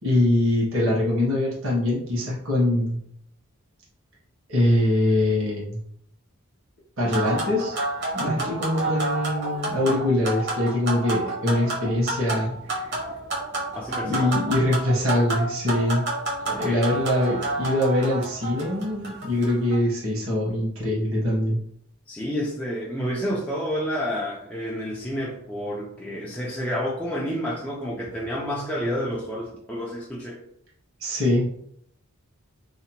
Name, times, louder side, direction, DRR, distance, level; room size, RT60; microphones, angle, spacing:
voice 1, 0.0-3.0 4.5-5.8 7.0-7.7 8.1-12.9 14.0-16.1 16.5-21.6 31.0-31.5, left 1 dB, 70° right, -5 dB, 1.1 m, -23 dB
sound 1, 7.1-19.8, right 2 dB, 50° right, 0.7 m, -30 dB
voice 2, 8.2-8.6 13.7-14.3 16.4-16.8 22.1-30.4, equal, 5° left, -5 dB, 0.3 m, -30 dB
2.7 x 2.1 x 2.8 m, 0.69 s
head